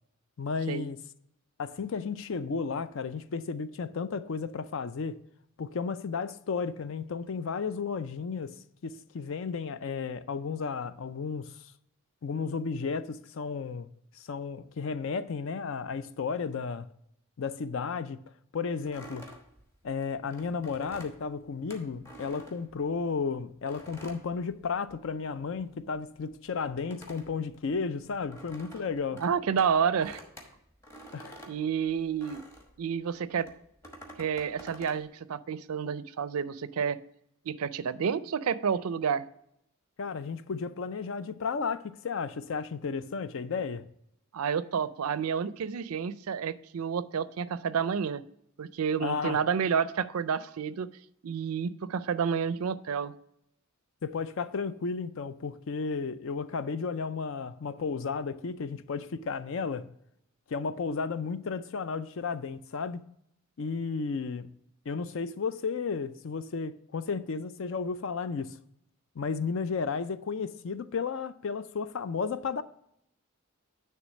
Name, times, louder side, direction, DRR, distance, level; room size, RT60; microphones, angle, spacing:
voice 1, 0.4-1.0 1.6-5.2 5.6-11.5 12.2-13.9 14.2-16.9 17.4-18.2 18.5-19.3 19.8-29.2 31.1-31.4 40.0-43.9 49.0-49.4 54.0-59.9 60.5-63.0 63.6-64.5 64.9-68.6 69.2-72.6, left 5 dB, 60° left, 0.4 m, -33 dB
sound 1, 18.9-23.2 23.7-25.2 25.4-32.8 33.4-35.0, right 1 dB, 10° left, 1.1 m, -49 dB
voice 2, 29.2-30.2 31.5-32.4 32.8-33.5 34.2-37.0 37.5-39.3 44.3-48.2 48.6-50.9 51.2-53.1, right 7 dB, 80° right, 0.4 m, -30 dB
9.5 x 3.4 x 6.2 m
head